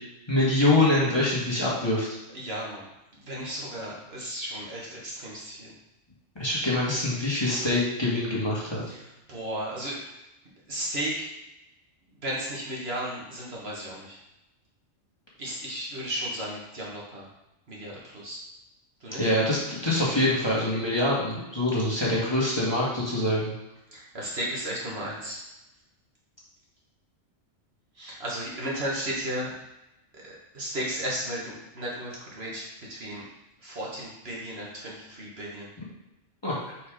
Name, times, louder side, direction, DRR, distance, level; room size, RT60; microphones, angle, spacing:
voice 1, 0.3-2.2 6.4-8.8 19.2-23.5 36.4-36.6, left 1 dB, 20° left, -7 dB, 1.6 m, -25 dB
voice 2, 2.3-2.8 3.3-5.7 8.9-9.0 9.3-10.0 10.7-11.1 12.2-14.2 15.4-17.3 17.7-18.4 19.0-19.3 23.9-25.4 28.0-29.5 30.1-33.2 33.6-35.7, right 1 dB, 55° right, -4 dB, 1.7 m, -34 dB
5.3 x 4.4 x 5.0 m, 0.95 s
omnidirectional pair, 1.3 m